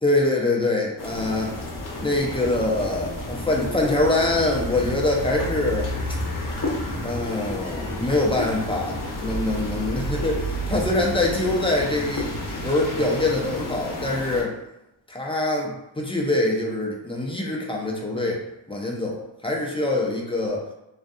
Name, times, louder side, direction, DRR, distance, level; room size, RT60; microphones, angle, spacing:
voice 1, 0.0-1.5 2.0-5.9 7.0-12.3 12.6-14.6 15.1-20.7, left 2 dB, 15° left, -2 dB, 0.3 m, -24 dB
sound 1, 1.0-14.4, left 1 dB, 45° left, 0.7 m, -32 dB
sound 2, 1.1-12.5, right 2 dB, 35° right, 1.0 m, -36 dB
2.4 x 2.3 x 2.5 m, 0.88 s
wide cardioid pair, 120°, 46 cm